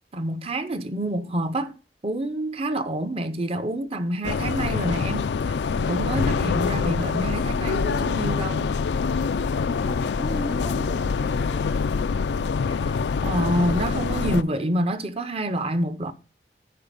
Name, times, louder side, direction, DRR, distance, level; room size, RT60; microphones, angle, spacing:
voice 1, 0.1-1.8 2.0-8.8 12.8-13.0 13.2-16.1, right 1 dB, 35° right, 0.7 m, -27 dB
sound 1, 4.2-14.4, left 5 dB, 80° left, 0.4 m, -25 dB
voice 2, 9.9-11.7, equal, ahead, 0.3 m, -37 dB
9.4 x 5.1 x 5.1 m
head